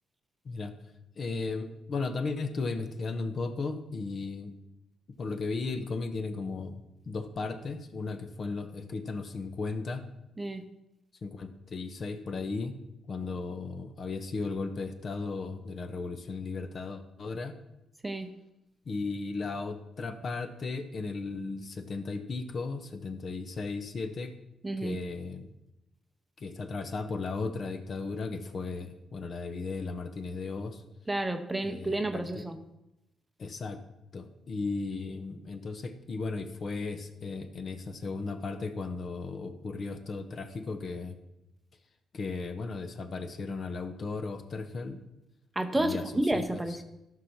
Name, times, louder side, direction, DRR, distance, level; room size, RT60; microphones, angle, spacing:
voice 1, 1.2-4.5 5.2-10.0 11.2-12.8 13.1-17.5 18.9-24.3 24.8-25.5 26.4-30.8 31.6-32.4 33.4-33.8 34.1-41.2 42.1-45.0 45.7-46.0 46.3-46.6, left 3 dB, 45° left, 8 dB, 1.1 m, -35 dB
voice 2, 24.6-25.0 31.1-32.6 45.6-46.8, right 1 dB, 10° right, 7 dB, 0.8 m, -30 dB
13.5 x 5.7 x 5.9 m, 0.90 s
cardioid pair, 115°, 0 cm